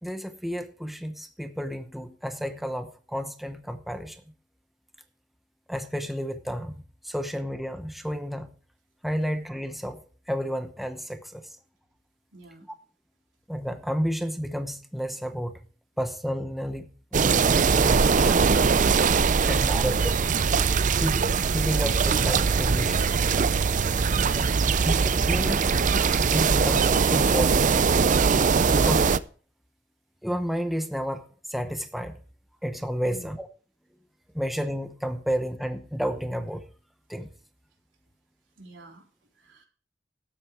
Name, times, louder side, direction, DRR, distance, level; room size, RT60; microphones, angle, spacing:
voice 1, 0.0-4.2 5.7-6.8 7.0-8.5 9.0-10.0 10.3-11.5 13.5-15.5 16.0-18.4 19.5-20.3 20.9-23.1 24.8-25.7 26.3-27.9 28.7-29.1 30.2-32.2 32.6-33.5 34.3-36.6 37.1-37.3, equal, ahead, 8 dB, 0.8 m, -31 dB
voice 2, 12.3-12.7 33.1-33.3 38.6-39.1 39.4-39.6, right 1 dB, 85° right, 1 dB, 3.7 m, -47 dB
sound 1, 17.1-29.2, right 5 dB, 45° right, 0.5 m, -21 dB
12.5 x 9.3 x 4.8 m, 0.40 s
head